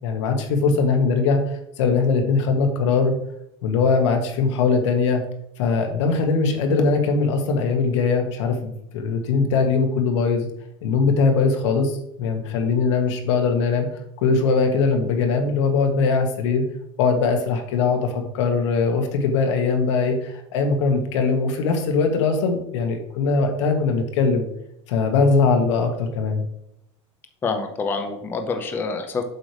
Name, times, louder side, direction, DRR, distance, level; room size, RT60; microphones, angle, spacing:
voice 1, 0.0-3.1 3.6-5.2 5.6-10.5 10.8-13.9 14.2-16.6 17.0-24.4 24.9-26.4, left 4 dB, 80° left, 4 dB, 1.6 m, -21 dB
voice 2, 27.4-29.2, left 4 dB, 15° left, 5 dB, 0.5 m, -26 dB
7.5 x 3.3 x 6.2 m, 0.78 s
supercardioid pair, 170°, 15 cm